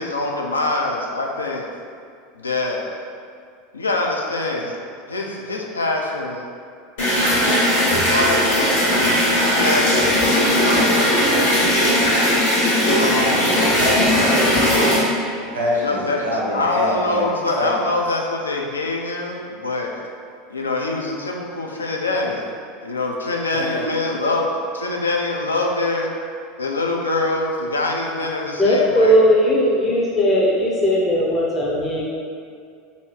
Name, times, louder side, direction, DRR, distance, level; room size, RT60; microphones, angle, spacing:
voice 1, 0.0-1.7 2.3-2.9 3.7-4.8 5.1-6.5 7.7-11.6 12.8-13.7 14.4-14.6 15.8-19.9 20.5-22.5 22.8-26.1 26.6-29.2, left 2 dB, 85° left, 0 dB, 0.3 m, -25 dB
sound 1, 7.0-15.0, equal, 70° left, 0.9 m, -18 dB
voice 2, 13.1-15.0 15.5-17.3 17.6-17.9 23.5-24.2, left 1 dB, 80° right, -5 dB, 0.6 m, -26 dB
voice 3, 28.6-32.1, equal, 25° left, -5 dB, 0.5 m, -17 dB
2.6 x 2.4 x 3.2 m, 2.3 s
figure-of-eight pair, 80°, 0 cm